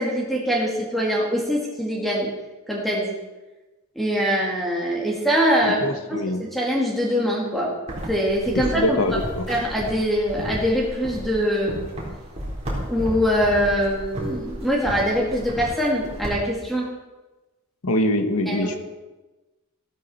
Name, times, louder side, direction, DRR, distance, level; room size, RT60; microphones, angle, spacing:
voice 1, 0.0-2.3 2.7-3.1 4.0-5.8 6.1-7.7 8.1-9.2 9.5-11.8 12.9-16.9 18.5-18.8, equal, ahead, -3 dB, 2.1 m, -23 dB
voice 2, 5.6-6.5 8.5-9.6 17.8-18.8, left 1 dB, 85° left, 8 dB, 1.3 m, -24 dB
sound 1, 7.9-16.3, equal, 30° right, 4.1 m, -33 dB
15.0 x 13.0 x 4.4 m, 1.1 s
head